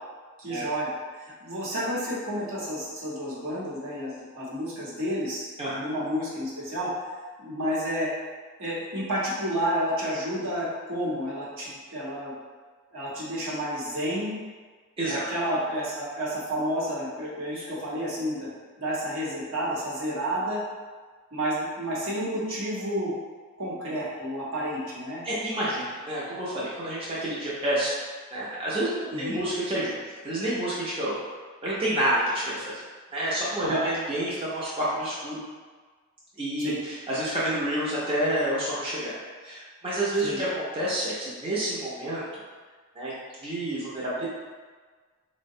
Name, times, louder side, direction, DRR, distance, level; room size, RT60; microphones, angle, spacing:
voice 1, 0.4-0.9 1.2-5.5 5.7-6.9 7.4-8.1 8.6-12.3 12.9-14.4 15.0-18.5 18.8-20.6 21.3-23.1 23.6-25.2 29.1-29.4 33.6-33.8 36.6-36.8 40.2-40.4, equal, 70° right, -7 dB, 0.9 m, -30 dB
voice 2, 25.2-27.9 28.3-31.1 31.6-32.8 33.1-35.4 36.4-39.1 39.4-42.2 43.0-43.1 43.4-44.3, right 1 dB, 25° right, -9 dB, 0.6 m, -29 dB
3.9 x 2.1 x 2.7 m, 1.5 s
head